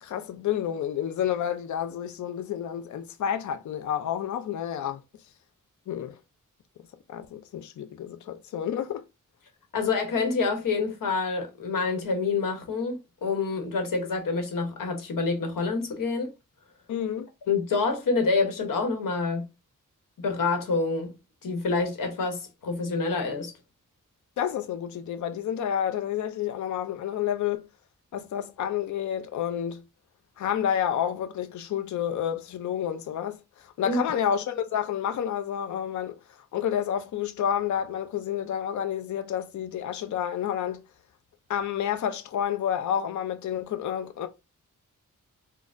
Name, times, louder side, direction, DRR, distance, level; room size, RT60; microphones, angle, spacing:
voice 1, 0.0-5.0 5.9-6.2 7.1-9.0 16.9-17.3 24.4-27.7 28.1-29.8 30.4-36.2 36.5-40.8 41.5-44.3, left 9 dB, 65° left, 0.4 m, -29 dB
voice 2, 9.7-16.3 17.5-19.5 20.2-21.2 21.4-23.5 33.9-34.0, left 4 dB, 85° left, 0.9 m, -27 dB
4.0 x 2.0 x 2.5 m
wide cardioid pair, 105°, 32 cm